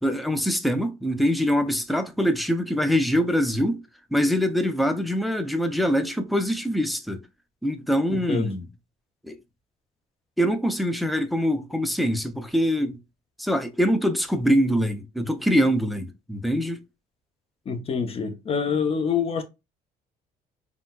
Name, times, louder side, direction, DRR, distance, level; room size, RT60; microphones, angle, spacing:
voice 1, 0.0-3.8 4.1-7.2 7.6-8.7 9.2-9.4 10.4-13.0 13.4-16.8, equal, ahead, 0.4 m, -24 dB
voice 2, 8.1-8.5 17.7-19.4, left 6 dB, 35° left, 0.7 m, -26 dB
3.8 x 2.1 x 2.2 m
cardioid pair, 110°, 17 cm